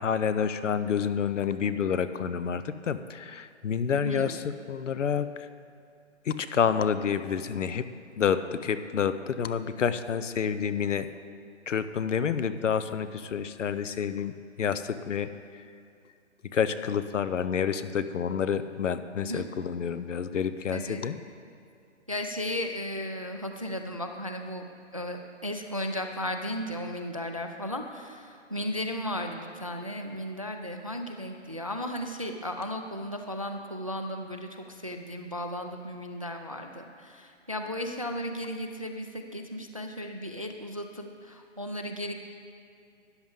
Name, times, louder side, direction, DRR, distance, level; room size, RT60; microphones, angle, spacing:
voice 1, 0.0-4.4 4.7-5.3 6.3-7.9 8.2-11.1 11.7-15.3 16.5-21.1, left 7 dB, 80° left, 12 dB, 0.7 m, -28 dB
voice 2, 3.9-4.4 19.2-19.5 20.7-21.1 22.1-24.6 24.9-42.1, left 1 dB, 30° right, 5 dB, 0.4 m, -35 dB
13.0 x 9.7 x 3.7 m, 2.4 s
hypercardioid pair, 170°, 36 cm